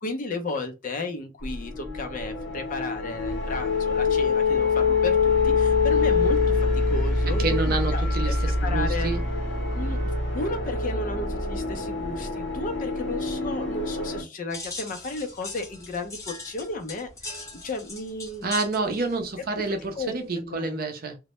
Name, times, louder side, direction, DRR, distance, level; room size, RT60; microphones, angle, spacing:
voice 1, 0.0-6.6 6.9-9.1 9.7-17.4 17.6-18.5 19.5-19.6 20.0-20.7, left 2 dB, 45° left, 0.5 m, -33 dB
sound 1, 1.4-14.2, left 4 dB, 90° left, 0.8 m, -25 dB
voice 2, 7.3-9.2 18.4-21.2, right 3 dB, 55° right, 0.5 m, -28 dB
sound 2, 14.5-20.3, left 3 dB, 15° left, 0.7 m, -41 dB
2.1 x 2.0 x 2.8 m
head